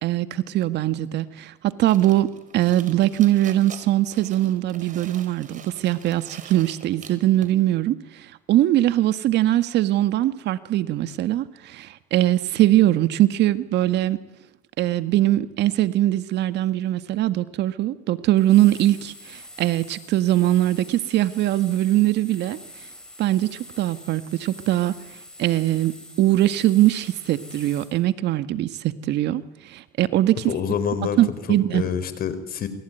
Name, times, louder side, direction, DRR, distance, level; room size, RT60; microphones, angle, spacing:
voice 1, 0.0-2.3 2.5-14.2 14.8-22.6 23.2-24.9 25.4-30.4 31.2-31.8, right 14 dB, 60° right, 11 dB, 1.8 m, -21 dB
sound 1, 1.8-7.6, right 7 dB, 40° right, 4.7 m, -45 dB
sound 2, 18.4-28.0, left 1 dB, 5° left, 7.9 m, -44 dB
voice 2, 30.5-32.7, left 7 dB, 50° left, 13 dB, 4.6 m, -27 dB
27.5 x 23.0 x 9.4 m, 0.91 s
supercardioid pair, 95°, 20 cm